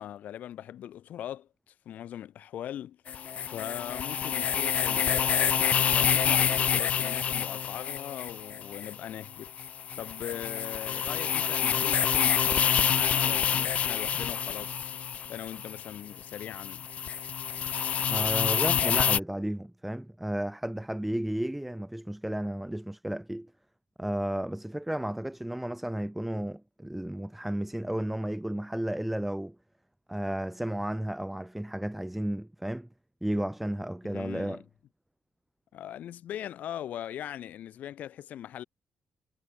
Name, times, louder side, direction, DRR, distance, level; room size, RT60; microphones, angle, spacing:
voice 1, 0.0-3.0 3.5-14.9 15.3-16.9 34.0-34.6 35.7-38.6, left 11 dB, 75° left, 2.1 m, -40 dB
sound 1, 3.1-19.2, left 8 dB, 55° left, 0.5 m, -27 dB
voice 2, 18.1-23.5 24.0-29.6 30.1-32.9 33.2-34.6, right 1 dB, 5° right, 0.9 m, -33 dB
cardioid pair, 105°, 3 cm